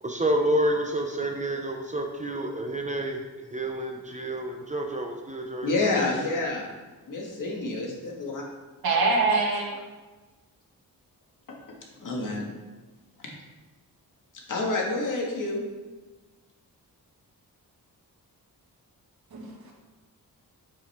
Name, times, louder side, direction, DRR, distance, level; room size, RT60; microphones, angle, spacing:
voice 1, 0.0-3.2 3.5-6.1, right 1 dB, 20° right, 2 dB, 0.7 m, -29 dB
voice 2, 5.6-6.7 7.1-8.4 11.5-11.6 12.0-12.4 13.2-13.3 14.5-15.6, left 2 dB, 60° left, -2 dB, 2.0 m, -28 dB
voice 3, 8.8-9.8 19.3-19.7, right 3 dB, 80° right, -1 dB, 2.1 m, -24 dB
8.9 x 8.2 x 3.6 m, 1.3 s
wide cardioid pair, 165°, 36 cm